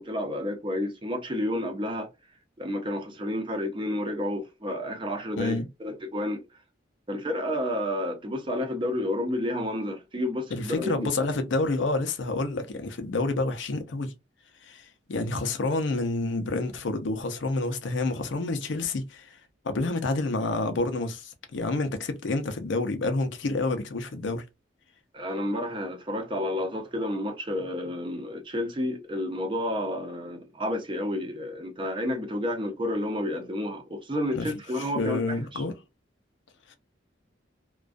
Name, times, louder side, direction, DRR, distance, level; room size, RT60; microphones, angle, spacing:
voice 1, 0.0-2.1 2.6-6.4 7.1-11.3 25.1-35.6, left 1 dB, 30° right, 0.5 m, -30 dB
voice 2, 10.5-14.1 14.6-19.3 19.6-24.4 34.3-34.5 35.0-35.7, left 2 dB, 80° left, 0.6 m, -28 dB
2.3 x 2.2 x 2.4 m
head